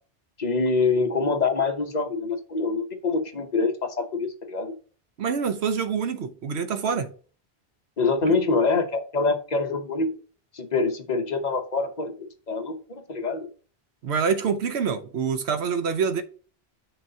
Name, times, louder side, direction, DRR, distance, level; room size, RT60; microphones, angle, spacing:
voice 1, 0.4-4.8 8.0-10.1 10.5-13.5, left 3 dB, 45° left, 1.0 m, -25 dB
voice 2, 5.2-7.1 14.0-16.2, right 6 dB, 85° right, 1.0 m, -26 dB
8.8 x 5.9 x 2.7 m
omnidirectional pair, 1.1 m